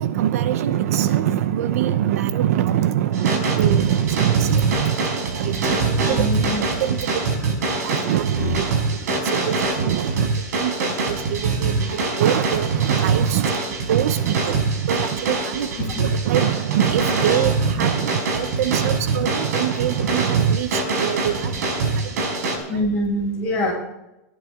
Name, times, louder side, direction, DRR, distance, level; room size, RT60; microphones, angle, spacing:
voice 1, 0.0-6.3 6.8-13.6 13.9-15.7 16.0-22.9, right 11 dB, 70° right, 12 dB, 0.9 m, -24 dB
sound 1, 3.1-22.6, right 3 dB, 90° right, 5.1 m, -24 dB
voice 2, 6.1-6.6 15.8-16.0 22.7-23.7, left 1 dB, 15° left, -4 dB, 6.7 m, -24 dB
26.0 x 11.0 x 3.7 m, 0.95 s
supercardioid pair, 165°, 8 cm